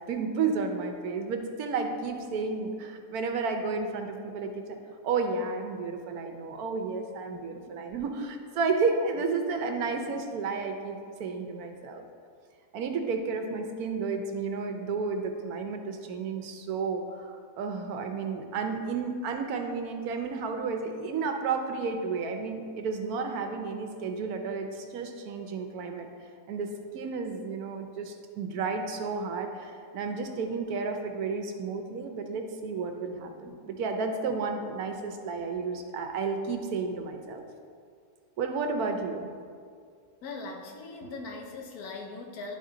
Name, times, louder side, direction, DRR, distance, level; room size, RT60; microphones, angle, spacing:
voice 1, 0.0-4.6 5.0-12.0 12.7-26.1 26.5-26.7 26.9-37.5 38.4-39.3 41.0-41.1, right 4 dB, 80° right, 5 dB, 1.2 m, -32 dB
voice 2, 7.3-7.8 40.2-42.6, left 3 dB, 80° left, 2 dB, 1.3 m, -41 dB
10.5 x 3.6 x 3.8 m, 2.2 s
omnidirectional pair, 1.6 m